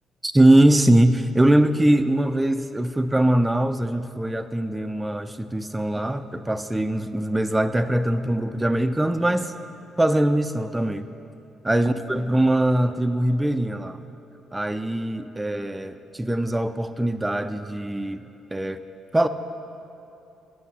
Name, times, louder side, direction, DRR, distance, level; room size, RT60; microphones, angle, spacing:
voice 1, 0.2-9.5 10.0-11.1 11.6-14.0 14.5-18.2 18.5-18.8 19.1-19.3, right 1 dB, 15° right, 9 dB, 0.4 m, -22 dB
8.1 x 4.9 x 7.0 m, 2.8 s
hypercardioid pair, 45°, 0 cm